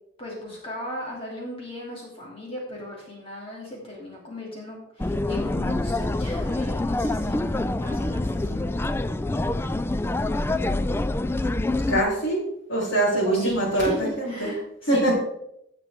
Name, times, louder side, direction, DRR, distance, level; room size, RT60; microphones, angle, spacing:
voice 1, 0.2-7.6 7.8-9.0 13.2-15.1, left 1 dB, 30° left, -3 dB, 2.6 m, -37 dB
sound 1, 5.0-12.0, left 2 dB, 10° left, 0.3 m, -26 dB
voice 2, 11.9-12.4 12.7-14.5 14.9-15.1, right 1 dB, 70° left, -8 dB, 3.6 m, -23 dB
16.5 x 5.9 x 3.6 m, 0.77 s
head